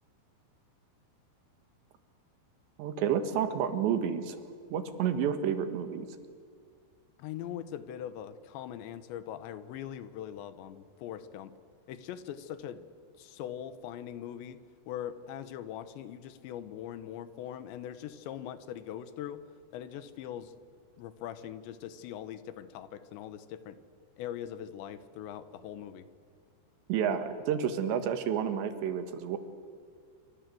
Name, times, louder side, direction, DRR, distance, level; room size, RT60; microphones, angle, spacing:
voice 1, 2.8-4.4 4.7-6.1 26.9-29.4, right 8 dB, 80° right, 9 dB, 3.8 m, -30 dB
voice 2, 7.2-11.5 11.9-12.8 13.2-19.4 19.7-20.5 21.0-23.8 24.2-26.1, left 10 dB, 85° left, 13 dB, 3.4 m, -41 dB
27.0 x 24.5 x 7.7 m, 2.1 s
omnidirectional pair, 5.0 m